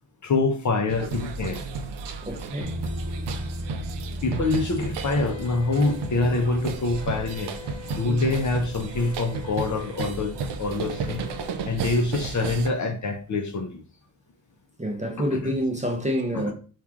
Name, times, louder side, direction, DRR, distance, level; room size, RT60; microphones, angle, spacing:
voice 1, 0.2-1.6 4.2-7.5 7.9-11.3 11.6-13.8 15.3-15.5 16.3-16.5, left 3 dB, 40° left, 0.6 m, -25 dB
sound 1, 0.9-12.7, right 5 dB, 60° right, 0.5 m, -33 dB
voice 2, 2.2-2.8 8.0-8.1 14.8-16.5, equal, 15° right, 0.6 m, -27 dB
Bass guitar, 2.6-8.9, left 1 dB, 80° left, 0.7 m, -38 dB
Wind instrument woodwind instrument, 5.0-11.6, left 10 dB, 15° left, 1.2 m, -45 dB
3.0 x 2.4 x 2.4 m
supercardioid pair, 50°, 49 cm